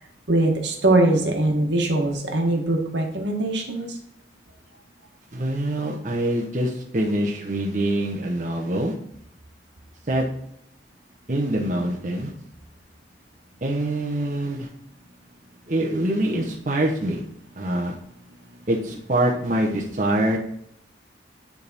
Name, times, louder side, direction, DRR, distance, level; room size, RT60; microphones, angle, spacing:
voice 1, 0.3-3.9, right 2 dB, 80° right, 2 dB, 1.3 m, -21 dB
voice 2, 5.3-8.9 10.1-10.3 11.3-12.3 13.6-14.7 15.7-17.2 17.5-17.9 18.7-20.4, right 1 dB, 45° right, -2 dB, 0.8 m, -24 dB
9.6 x 3.5 x 4.1 m, 0.72 s
head